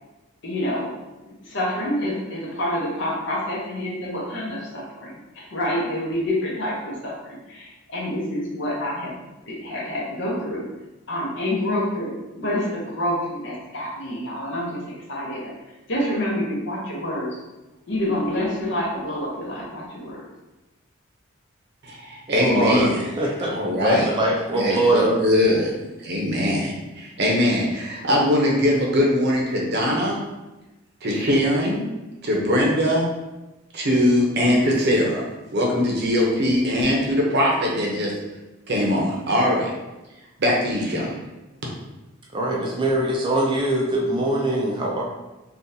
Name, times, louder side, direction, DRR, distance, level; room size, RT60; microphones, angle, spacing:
voice 1, 0.4-1.0 1.3-9.1 9.5-10.6 11.1-15.5 15.9-17.4 17.9-20.3, left 1 dB, 60° left, -4 dB, 0.9 m, -27 dB
voice 2, 21.8-23.1 23.4-24.1 24.5-25.7 26.0-30.2 31.0-31.8 32.2-33.1 33.7-35.2 35.5-38.1 38.7-39.7 40.4-41.1, left 1 dB, 50° right, -2 dB, 0.7 m, -21 dB
voice 3, 22.3-25.2 42.3-45.0, right 1 dB, 25° right, -2 dB, 0.4 m, -22 dB
3.7 x 2.4 x 2.7 m, 1.1 s
head